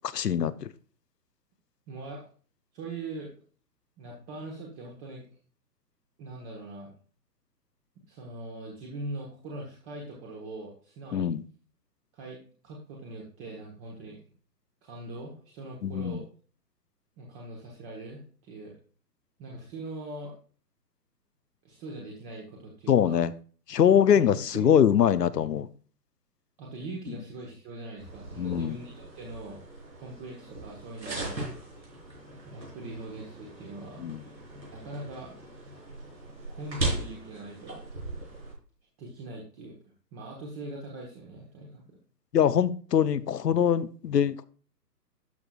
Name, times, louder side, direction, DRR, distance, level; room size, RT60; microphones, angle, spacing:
voice 1, 0.1-0.7 11.1-11.4 15.8-16.2 22.9-23.3 23.7-25.7 28.4-28.8 34.0-34.2 42.3-44.4, left 9 dB, 70° left, 0.7 m, -23 dB
voice 2, 1.9-2.3 2.7-3.3 4.0-5.3 6.2-6.9 8.1-11.3 12.1-12.4 12.6-14.2 14.8-16.2 17.2-18.7 19.4-20.3 21.6-23.3 24.1-24.7 26.6-29.6 30.0-31.4 32.4-34.0 34.7-35.8 36.5-37.8 39.0-39.7 40.1-42.0, right 2 dB, 20° right, 1.2 m, -41 dB
sound 1, 28.0-38.5, right 2 dB, 85° right, 4.5 m, -38 dB
12.5 x 6.0 x 2.3 m
figure-of-eight pair, 130°, 50 cm